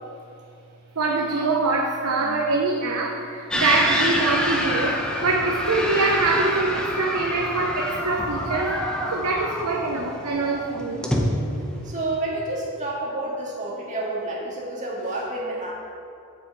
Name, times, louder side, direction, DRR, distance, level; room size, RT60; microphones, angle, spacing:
voice 1, 1.0-8.8 9.1-11.1, right 3 dB, 80° right, 0 dB, 0.9 m, -24 dB
sound 1, 3.5-12.2, equal, 5° left, 0.9 m, -27 dB
voice 2, 11.8-15.7, right 2 dB, 35° right, -4 dB, 1.9 m, -29 dB
7.7 x 6.2 x 8.0 m, 2.5 s
head